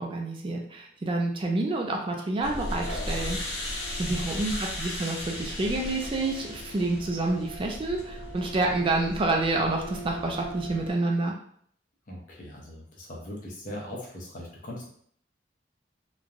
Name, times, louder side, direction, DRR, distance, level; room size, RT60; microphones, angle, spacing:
voice 1, 0.0-3.7 4.0-11.3, right 2 dB, 30° right, 1 dB, 0.3 m, -28 dB
sound 1, 2.4-10.9, left 1 dB, 75° left, 1.1 m, -36 dB
voice 2, 12.1-14.9, left 1 dB, 50° left, -2 dB, 0.8 m, -40 dB
3.1 x 2.2 x 2.4 m, 0.62 s
head